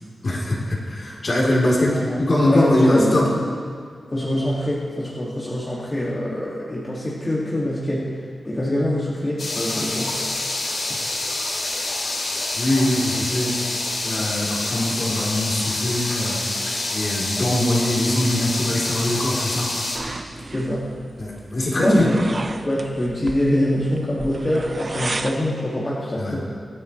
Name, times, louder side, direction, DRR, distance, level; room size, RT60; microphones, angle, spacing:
voice 1, 0.2-3.3 12.5-13.6 14.0-16.5 16.9-19.7 21.2-22.1 26.2-26.4, left 1 dB, 50° left, -5 dB, 3.6 m, -22 dB
voice 2, 1.9-2.2 2.5-3.2 4.1-8.1 8.4-10.4 20.5-20.9 21.8-26.4, left 1 dB, 25° left, -7 dB, 2.3 m, -24 dB
sound 1, 9.4-20.0, left 2 dB, 65° left, 2.7 m, -27 dB
sound 2, 19.9-25.4, right 3 dB, 40° right, 0.7 m, -34 dB
25.0 x 9.1 x 3.3 m, 2.1 s
wide cardioid pair, 100°, 0 cm